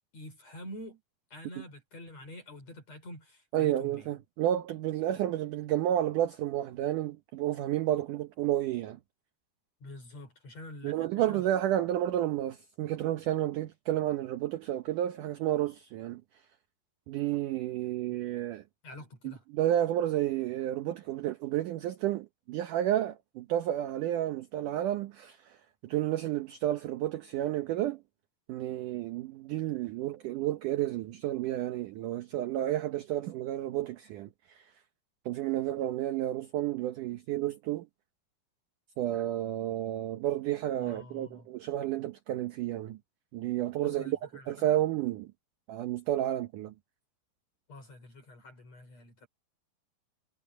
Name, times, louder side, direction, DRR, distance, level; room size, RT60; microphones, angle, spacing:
voice 1, 0.1-1.0 1.3-4.1 9.8-11.4 18.8-19.4 40.8-41.5 43.8-44.5 47.7-49.3, left 1 dB, 40° left, 5.8 m, -47 dB
voice 2, 3.5-9.0 10.8-16.2 17.1-18.6 19.2-25.6 25.8-28.0 28.5-34.6 35.3-37.9 39.0-43.0 43.3-44.2 44.5-45.3 45.7-46.7, right 12 dB, 75° right, 1.9 m, -31 dB
omnidirectional pair, 4.8 m